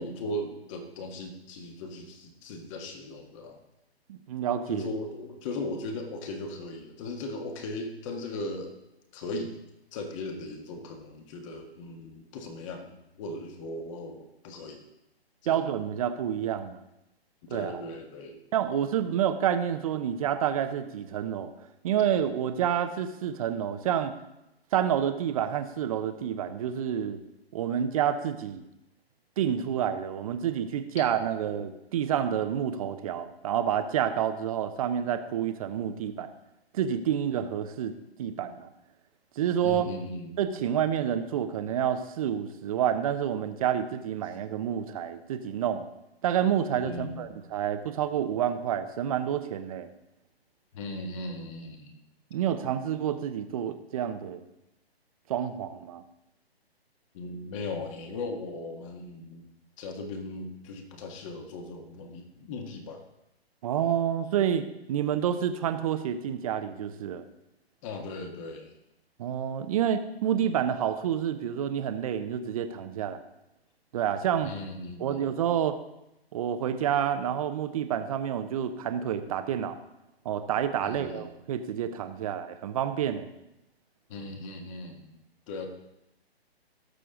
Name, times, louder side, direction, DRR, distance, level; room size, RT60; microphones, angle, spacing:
voice 1, 0.0-3.6 4.7-8.8 9.1-9.6 9.9-14.8 15.4-15.6 17.4-18.4 39.6-40.4 46.8-47.3 50.7-52.0 57.1-59.5 59.8-63.0 67.8-68.8 74.4-75.2 80.8-81.3 84.1-85.2 85.5-85.7, left 2 dB, 30° left, 4 dB, 1.6 m, -38 dB
voice 2, 4.1-4.9 15.5-16.8 17.5-17.8 18.5-21.5 21.8-24.1 24.7-27.2 27.5-28.6 29.4-36.3 36.7-37.9 38.2-38.7 39.4-39.8 40.4-45.9 46.2-49.9 52.3-54.4 55.3-56.0 63.6-67.2 69.2-73.2 73.9-74.5 75.0-75.8 76.3-79.8 80.2-83.3, right 9 dB, 35° right, 9 dB, 0.8 m, -28 dB
18.0 x 6.7 x 3.8 m, 0.88 s
hypercardioid pair, 145°, 32 cm